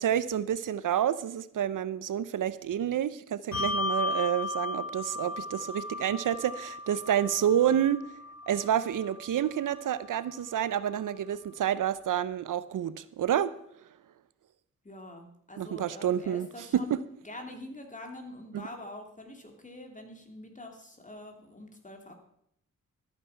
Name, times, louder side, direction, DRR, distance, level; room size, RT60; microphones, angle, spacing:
voice 1, 0.0-8.0 8.5-13.5 15.6-16.5 16.7-17.0 18.5-18.7, right 10 dB, 75° right, 15 dB, 0.6 m, -29 dB
Bell, 3.5-10.4, left 3 dB, 55° left, 5.0 m, -36 dB
voice 2, 14.8-17.0 17.2-22.2, left 1 dB, 25° left, 4 dB, 2.7 m, -45 dB
13.0 x 8.9 x 5.7 m, 0.71 s
cardioid pair, 75°, 32 cm